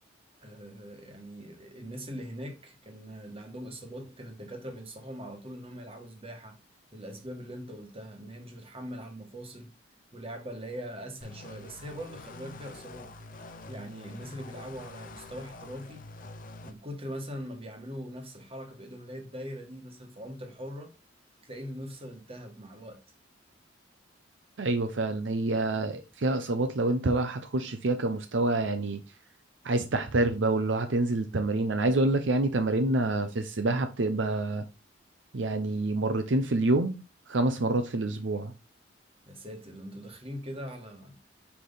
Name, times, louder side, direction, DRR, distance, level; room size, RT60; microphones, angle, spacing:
voice 1, 0.4-6.6 6.9-9.7 10.1-13.1 13.7-16.0 16.6-20.9 21.4-23.0 39.2-41.2, equal, 30° right, 1.5 m, -41 dB
sound 1, 11.2-16.7, left 2 dB, 45° left, 0.7 m, -46 dB
voice 2, 24.6-29.0 29.6-34.6 35.3-38.5, right 2 dB, 70° right, 0.7 m, -27 dB
5.9 x 5.1 x 3.9 m
head